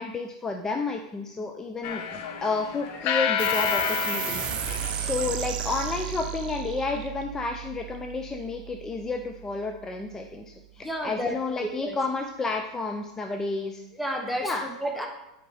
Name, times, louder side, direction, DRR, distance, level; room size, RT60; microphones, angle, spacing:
voice 1, 0.0-13.8 14.4-14.6, left 3 dB, 15° left, 4 dB, 0.6 m, -31 dB
sound 1, 1.8-6.1, left 8 dB, 50° left, 1.0 m, -30 dB
sound 2, 3.4-10.3, right 11 dB, 35° right, 0.6 m, -35 dB
voice 2, 10.8-12.0 13.9-15.1, equal, ahead, 2 dB, 1.1 m, -31 dB
8.9 x 5.1 x 4.8 m, 0.89 s
hypercardioid pair, 115°, 3 cm